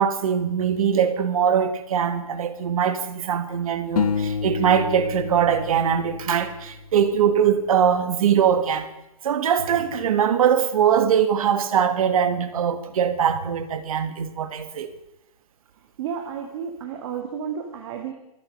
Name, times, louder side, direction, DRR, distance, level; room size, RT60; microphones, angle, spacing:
voice 1, 0.0-8.9 9.2-14.9, right 8 dB, 70° right, 1.8 m, -22 dB
sound 1, 4.0-7.2, left 6 dB, 75° left, 1.5 m, -29 dB
voice 2, 16.0-18.1, right 7 dB, 55° right, 2.2 m, -32 dB
25.5 x 8.9 x 5.4 m
hypercardioid pair, 140°, 19 cm